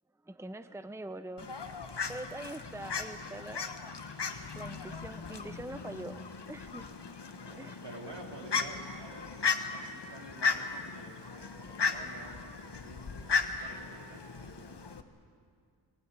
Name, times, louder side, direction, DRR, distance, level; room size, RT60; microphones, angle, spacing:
voice 1, 0.2-3.6 4.5-6.2 6.5-6.9 7.6-7.8, right 1 dB, 5° right, 11 dB, 0.8 m, -43 dB
Fowl, 1.4-15.0, left 5 dB, 70° left, 1.4 m, -36 dB
voice 2, 7.4-9.3 9.6-15.0, right 2 dB, 75° right, 1 dB, 3.3 m, -50 dB
23.5 x 19.0 x 9.6 m, 2.3 s
wide cardioid pair, 65°, 42 cm